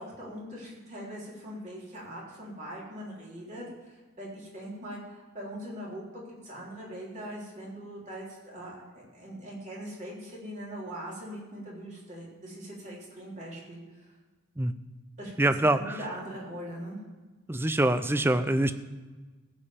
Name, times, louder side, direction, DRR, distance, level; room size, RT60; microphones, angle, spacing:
voice 1, 0.0-8.8 9.1-14.1 15.2-17.0, equal, 35° right, -5 dB, 3.5 m, -41 dB
voice 2, 15.4-16.0 17.5-18.7, right 1 dB, 10° right, 11 dB, 0.4 m, -24 dB
15.5 x 5.3 x 7.1 m, 1.3 s
head